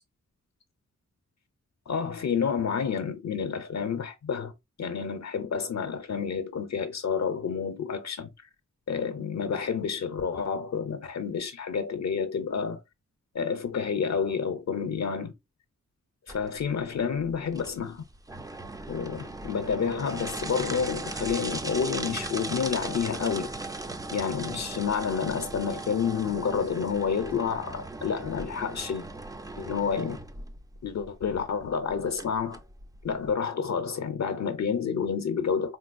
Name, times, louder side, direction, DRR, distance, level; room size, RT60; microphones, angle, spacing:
voice 1, 1.9-4.5 4.8-8.3 8.9-12.8 13.3-15.3 16.3-18.0 18.9-23.5 24.1-29.1 29.6-30.2 30.8-32.6 33.0-35.8, left 6 dB, 65° left, 0.5 m, -29 dB
sound 1, 16.3-33.3, right 2 dB, 15° right, 0.3 m, -38 dB
3.9 x 2.2 x 2.4 m
wide cardioid pair, 80°, 30 cm